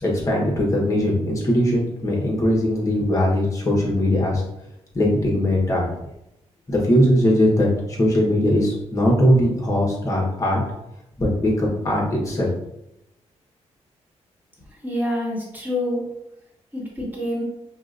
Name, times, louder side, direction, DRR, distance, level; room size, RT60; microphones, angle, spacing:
voice 1, 0.0-4.4 4.9-5.9 6.7-10.6 11.2-12.5, equal, 25° left, -3 dB, 1.2 m, -20 dB
voice 2, 14.8-16.0 16.7-17.4, left 1 dB, 15° right, -5 dB, 1.5 m, -26 dB
4.9 x 2.4 x 2.5 m, 0.83 s
cardioid pair, 120°, 12 cm